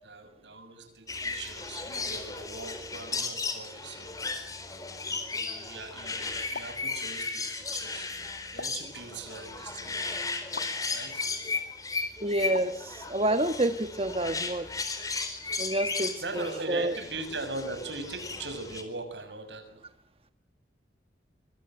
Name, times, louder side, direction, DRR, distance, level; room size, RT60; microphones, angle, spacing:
voice 1, 0.0-4.3 5.1-8.1 8.5-10.1 10.9-11.3 15.9-19.9, right 3 dB, 85° right, 6.7 m, -40 dB
sound 1, 1.1-18.8, left 4 dB, 20° left, 4.3 m, -35 dB
sound 2, 6.5-6.8 8.6-8.9 10.6-10.8 12.5-12.8, left 4 dB, 75° left, 1.8 m, -40 dB
voice 2, 12.2-14.7 15.6-16.9, right 1 dB, 35° right, 1.3 m, -28 dB
25.5 x 25.0 x 8.0 m
head